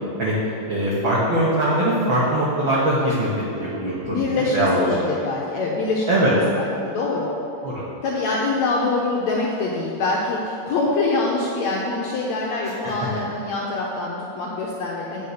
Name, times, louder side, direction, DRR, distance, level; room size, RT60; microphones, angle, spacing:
voice 1, 0.7-3.3 3.6-4.8 6.1-6.3 7.6-7.8 12.6-12.9, right 1 dB, 70° right, -7 dB, 1.2 m, -22 dB
voice 2, 4.1-7.3 8.0-15.3, left 3 dB, 75° left, -2 dB, 1.6 m, -24 dB
8.4 x 5.5 x 6.5 m, 2.8 s
omnidirectional pair, 4.0 m